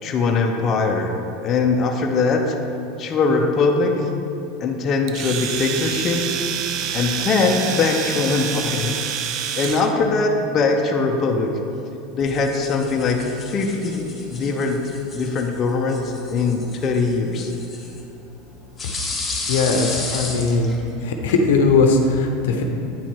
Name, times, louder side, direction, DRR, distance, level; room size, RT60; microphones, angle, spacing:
voice 1, 0.0-2.6 3.0-4.1 4.6-6.2 6.9-9.0 9.5-11.5 12.1-17.5, left 4 dB, 35° left, 2 dB, 0.7 m, -21 dB
Domestic sounds home sounds, 5.1-9.9, right 8 dB, 50° right, 0.5 m, -27 dB
sound 1, 12.2-21.4, left 3 dB, 15° left, 1.3 m, -34 dB
voice 2, 19.5-20.7 21.0-22.6, left 3 dB, 85° left, 3 dB, 0.8 m, -19 dB
9.3 x 4.5 x 4.4 m, 2.7 s
supercardioid pair, 125°, 0 cm